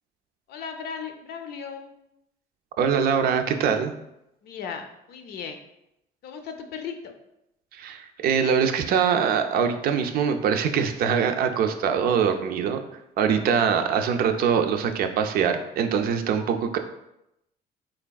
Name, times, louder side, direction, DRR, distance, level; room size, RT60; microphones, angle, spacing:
voice 1, 0.5-1.9 4.4-5.6 6.2-7.1, left 6 dB, 70° left, 6 dB, 0.5 m, -36 dB
voice 2, 2.8-3.9 7.7-12.8 13.2-16.8, right 7 dB, 60° right, 7 dB, 0.4 m, -23 dB
3.9 x 3.4 x 2.3 m, 0.85 s
cardioid pair, 110°, 17 cm